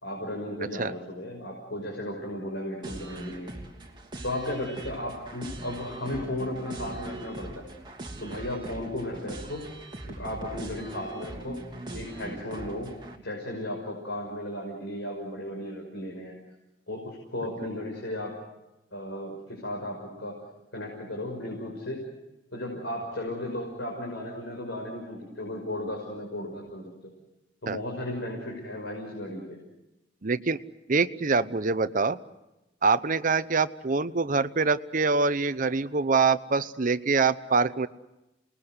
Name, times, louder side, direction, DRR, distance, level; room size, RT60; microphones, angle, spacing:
voice 1, 0.0-3.5 4.2-7.6 8.2-9.7 10.1-11.6 11.9-16.3 16.9-18.4 18.9-20.4 20.7-22.1 22.5-26.9 27.6-29.6, left 1 dB, 80° left, -1 dB, 5.9 m, -35 dB
sound 1, 2.8-13.2, right 2 dB, 25° right, 3.0 m, -41 dB
voice 2, 30.2-30.6 30.9-32.2 32.8-37.9, right 4 dB, 45° right, 13 dB, 0.8 m, -25 dB
29.0 x 20.5 x 8.0 m, 0.96 s
head